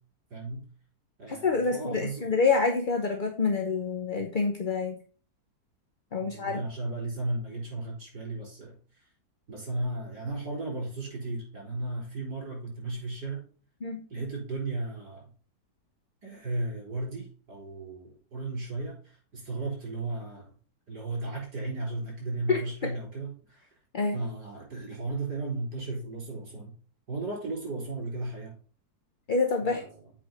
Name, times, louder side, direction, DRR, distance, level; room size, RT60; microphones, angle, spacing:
voice 1, 0.3-0.6 1.2-2.3 6.2-9.1 9.5-13.4 14.1-15.3 16.2-20.5 20.9-23.7 24.1-26.8 27.1-28.5 29.6-30.1, right 2 dB, 75° right, -1 dB, 4.5 m, -35 dB
voice 2, 1.3-5.0 6.1-6.6 13.8-14.0 22.5-22.6 23.9-24.2 29.3-29.8, left 4 dB, 45° left, 3 dB, 0.7 m, -27 dB
7.7 x 5.0 x 5.2 m, 0.40 s
omnidirectional pair, 1.8 m